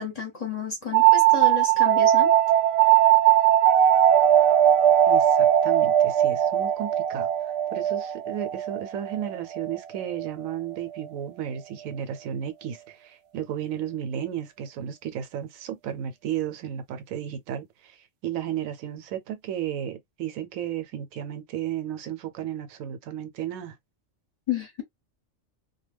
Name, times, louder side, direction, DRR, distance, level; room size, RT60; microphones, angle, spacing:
voice 1, 0.0-2.3 24.5-24.8, left 6 dB, 35° left, 0.8 m, -31 dB
sound 1, 0.9-10.3, right 11 dB, 65° right, 0.7 m, -20 dB
voice 2, 5.1-7.3 7.7-23.8, right 10 dB, 85° right, 1.0 m, -33 dB
2.2 x 2.1 x 3.3 m
omnidirectional pair, 1.4 m